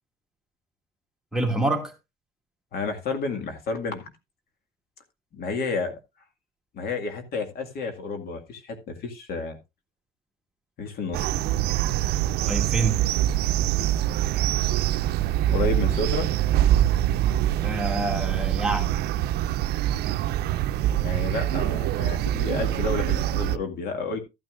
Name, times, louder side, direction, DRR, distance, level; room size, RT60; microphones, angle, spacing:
voice 1, 1.3-1.9 12.5-13.0 17.5-18.9, right 2 dB, 5° right, 2.1 m, -27 dB
voice 2, 2.7-4.1 5.3-6.0 6.7-9.6 10.8-11.3 15.5-16.3 21.0-24.2, left 4 dB, 65° left, 2.1 m, -30 dB
sound 1, 11.1-23.6, right 12 dB, 75° right, 0.5 m, -24 dB
14.0 x 9.5 x 2.5 m
cardioid pair, 110°, 17 cm